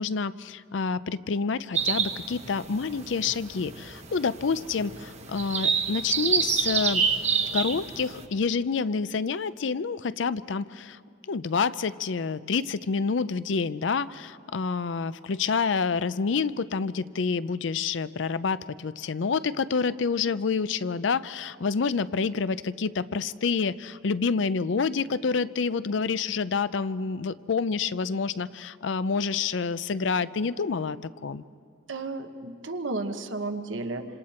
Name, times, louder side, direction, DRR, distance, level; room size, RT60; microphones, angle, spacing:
voice 1, 0.0-7.0 7.5-11.0 11.3-31.4, left 5 dB, 70° left, 15 dB, 0.5 m, -28 dB
sound 1, 1.7-8.2, right 6 dB, 35° right, 1.1 m, -28 dB
voice 2, 31.9-34.0, right 3 dB, 80° right, 6 dB, 1.3 m, -33 dB
27.5 x 26.0 x 4.4 m, 2.3 s
head